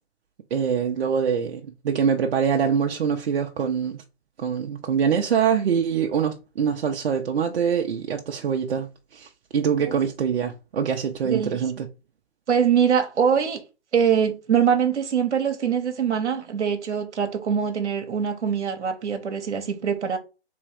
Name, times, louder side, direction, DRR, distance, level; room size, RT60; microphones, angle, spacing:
voice 1, 0.5-4.0 4.4-11.9, right 7 dB, 60° right, 0.7 m, -24 dB
voice 2, 11.2-11.6 12.5-13.6 13.9-20.2, right 7 dB, 85° right, 0.9 m, -23 dB
3.5 x 3.1 x 4.7 m
hypercardioid pair, 145°, 34 cm